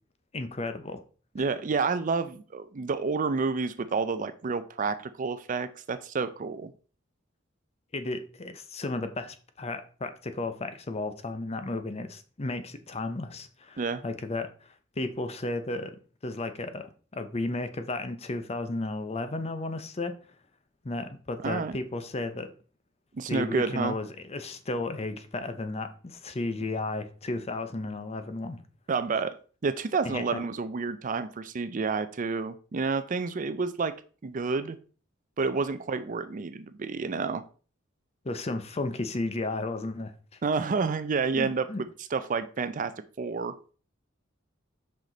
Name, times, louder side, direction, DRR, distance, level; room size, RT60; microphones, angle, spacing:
voice 1, 0.3-1.0 7.9-14.5 15.0-20.1 20.8-22.5 23.3-28.6 30.0-30.2 38.2-40.1 41.4-41.8, left 2 dB, 30° left, 0.7 m, -33 dB
voice 2, 1.3-6.7 13.8-14.0 21.4-21.8 23.1-24.0 28.9-29.4 29.6-33.9 34.2-34.8 35.4-37.4 40.4-41.7 42.1-43.7, right 4 dB, 40° right, 0.5 m, -29 dB
5.7 x 5.1 x 3.9 m
head